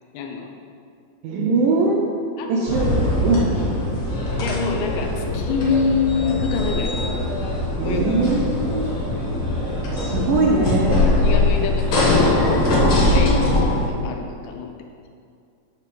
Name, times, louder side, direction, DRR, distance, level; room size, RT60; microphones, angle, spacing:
voice 1, 0.1-0.5 2.4-3.0 4.4-6.9 7.8-8.0 10.6-12.4 12.7-14.7, left 5 dB, 85° left, 3 dB, 2.8 m, -26 dB
voice 2, 1.2-2.1 2.5-3.5 7.8-8.9 9.9-11.0 12.8-13.0, right 3 dB, 85° right, -2 dB, 1.8 m, -21 dB
sound 1, 2.7-13.9, left 2 dB, 50° left, 1.7 m, -21 dB
9.6 x 3.2 x 6.8 m, 2.3 s
omnidirectional pair, 4.4 m